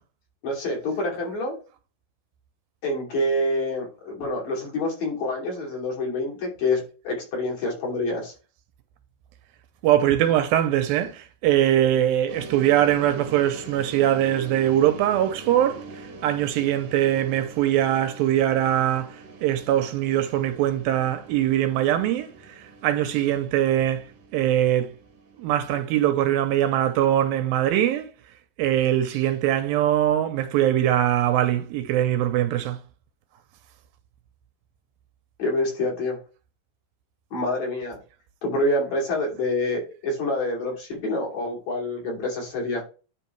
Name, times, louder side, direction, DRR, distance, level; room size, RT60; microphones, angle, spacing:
voice 1, 0.4-1.6 2.8-8.3 35.4-36.2 37.3-38.0 38.4-42.8, left 1 dB, 50° left, 3.7 m, -27 dB
voice 2, 9.8-19.2 19.4-22.3 22.6-24.1 24.3-24.9 25.4-28.1 28.6-32.8, right 12 dB, 85° right, 2.4 m, -22 dB
sound 1, 12.3-27.2, right 3 dB, 65° right, 1.5 m, -43 dB
10.0 x 3.5 x 4.5 m
omnidirectional pair, 4.3 m